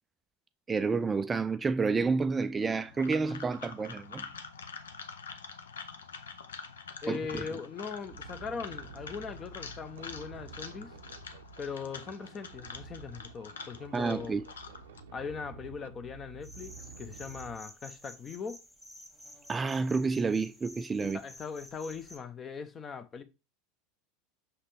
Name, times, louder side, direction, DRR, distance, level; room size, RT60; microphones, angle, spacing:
voice 1, 0.7-4.2 7.1-7.4 13.9-14.4 19.5-21.2, right 4 dB, 20° right, 0.3 m, -29 dB
sound 1, 2.6-15.0, left 5 dB, 70° left, 0.7 m, -46 dB
voice 2, 7.0-10.9 11.6-14.4 15.1-18.6 21.0-23.2, left 5 dB, 30° left, 0.8 m, -40 dB
sound 2, 7.8-17.6, right 5 dB, 65° right, 0.6 m, -50 dB
sound 3, 16.4-22.2, equal, 5° left, 1.8 m, -51 dB
6.0 x 5.7 x 3.3 m
figure-of-eight pair, 80°, 0 cm